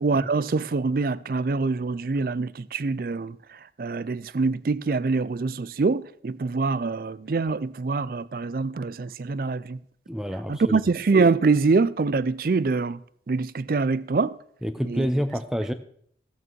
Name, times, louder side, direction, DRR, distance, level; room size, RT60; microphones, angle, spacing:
voice 1, 0.0-3.4 3.8-9.8 10.5-13.0 13.3-14.3 14.9-15.1, right 4 dB, 55° right, 0.4 m, -24 dB
voice 2, 10.1-10.8 14.6-15.7, equal, 5° right, 0.6 m, -27 dB
13.5 x 8.7 x 4.5 m
head